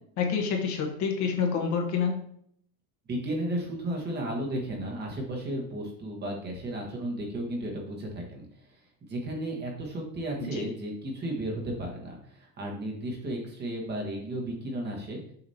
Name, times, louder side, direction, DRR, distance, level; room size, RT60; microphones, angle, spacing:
voice 1, 0.2-2.2 10.4-10.7, left 6 dB, 45° left, 1 dB, 1.2 m, -28 dB
voice 2, 3.1-8.4 9.1-15.2, right 1 dB, 25° right, -1 dB, 1.4 m, -34 dB
6.8 x 5.0 x 2.8 m, 0.66 s
supercardioid pair, 145°, 41 cm